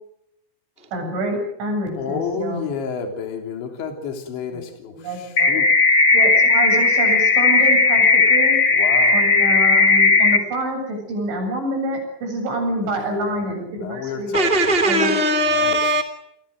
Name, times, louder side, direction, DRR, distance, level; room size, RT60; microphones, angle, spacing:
voice 1, 0.9-2.7 4.5-4.6 4.9-5.6 6.1-8.6 9.1-14.3 14.9-15.1, right 1 dB, 70° right, 3 dB, 10.5 m, -27 dB
voice 2, 1.9-5.7 8.8-9.3 12.8-13.5 13.8-14.5 15.5-15.9, left 6 dB, 65° left, 4 dB, 5.5 m, -30 dB
sound 1, 5.4-10.4, left 3 dB, 50° left, 1.2 m, -15 dB
voice 3, 14.3-16.0, right 1 dB, 85° left, 9 dB, 0.5 m, -19 dB
29.0 x 21.0 x 6.6 m, 0.78 s
omnidirectional pair, 5.7 m